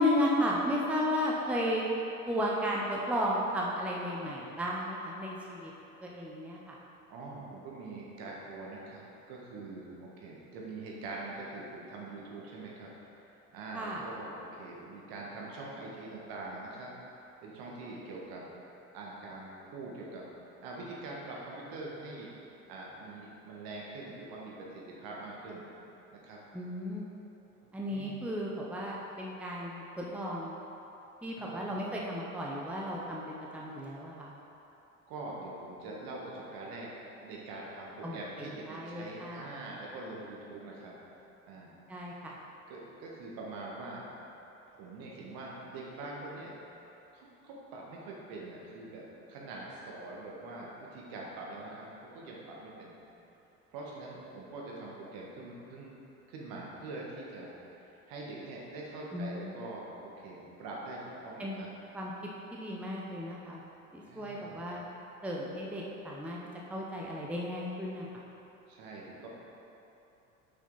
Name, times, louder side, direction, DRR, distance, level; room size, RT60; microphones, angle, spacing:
voice 1, 0.0-1.8 2.3-5.7 6.0-6.8 13.7-14.0 26.5-27.1 27.7-30.6 31.2-34.3 38.0-39.4 41.9-42.4 59.1-59.5 61.4-61.6 61.9-62.1 62.5-63.6 63.9-64.8 65.2-66.4 66.7-68.1, equal, 5° right, -3 dB, 0.8 m, -34 dB
voice 2, 7.1-12.9 13.2-13.3 13.5-16.9 17.4-18.5 18.9-20.2 20.6-22.3 22.7-25.7 26.1-26.4 27.8-28.1 31.4-31.7 35.1-36.9 37.2-40.9 41.5-41.7 42.7-44.1 44.7-46.5 47.1-52.9 53.7-55.9 56.3-57.5 58.1-61.7 64.1-64.7 68.7-69.3, right 2 dB, 55° right, -3 dB, 1.5 m, -44 dB
6.1 x 6.0 x 4.0 m, 3.0 s
figure-of-eight pair, 60°, 42 cm